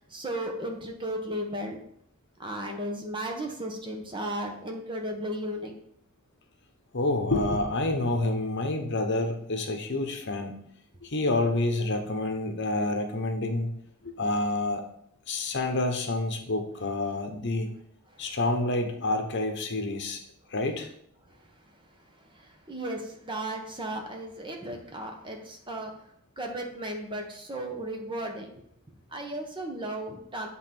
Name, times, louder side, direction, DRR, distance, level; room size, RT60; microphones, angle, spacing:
voice 1, 0.0-1.8 2.4-5.7 18.1-18.4 21.3-25.9 26.4-28.6 29.1-30.5, right 1 dB, 20° right, 2 dB, 1.1 m, -35 dB
voice 2, 6.9-10.6 11.0-13.7 14.0-14.8 15.3-17.7 18.2-20.2 20.5-20.9, left 2 dB, 55° left, 5 dB, 1.0 m, -28 dB
8.0 x 3.9 x 6.0 m, 0.70 s
head